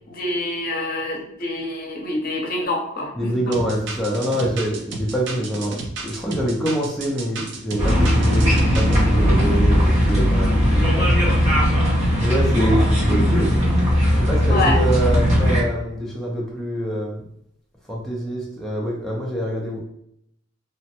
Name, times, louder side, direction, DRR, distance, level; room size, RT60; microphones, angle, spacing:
voice 1, 0.1-3.5 14.5-14.8, left 2 dB, 50° left, 0 dB, 0.7 m, -26 dB
voice 2, 3.1-11.4 12.2-13.5 14.1-17.2 17.9-19.8, equal, ahead, -4 dB, 0.4 m, -25 dB
sound 1, 3.5-9.0, right 3 dB, 65° right, 0.5 m, -33 dB
sound 2, 7.8-15.6, equal, 35° right, 0.9 m, -18 dB
2.9 x 2.0 x 2.8 m, 0.75 s
head